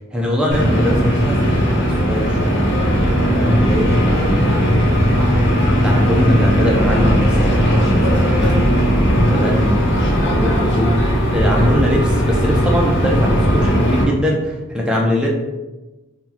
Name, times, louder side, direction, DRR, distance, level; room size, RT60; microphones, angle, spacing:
voice 1, 0.1-2.6 3.0-4.7 5.2-8.7 9.3-10.9 11.3-15.3, equal, 5° right, -2 dB, 0.3 m, -22 dB
sound 1, 0.5-14.0, equal, 50° left, 0.7 m, -16 dB
2.7 x 2.0 x 3.4 m, 1.1 s
head